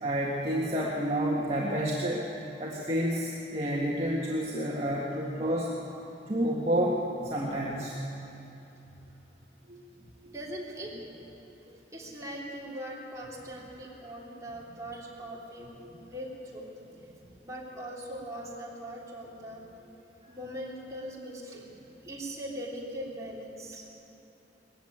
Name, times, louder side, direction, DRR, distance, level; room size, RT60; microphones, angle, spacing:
voice 1, 0.0-2.3 2.6-5.7 6.3-8.0 9.7-9.8 10.2-10.3 15.8-16.1, equal, 35° right, -4 dB, 1.7 m, -30 dB
voice 2, 10.3-10.9 11.9-15.7 16.1-16.7 17.4-19.6 20.3-21.7 22.0-23.8, right 1 dB, 20° right, -4 dB, 3.6 m, -40 dB
20.5 x 14.5 x 8.9 m, 2.9 s
head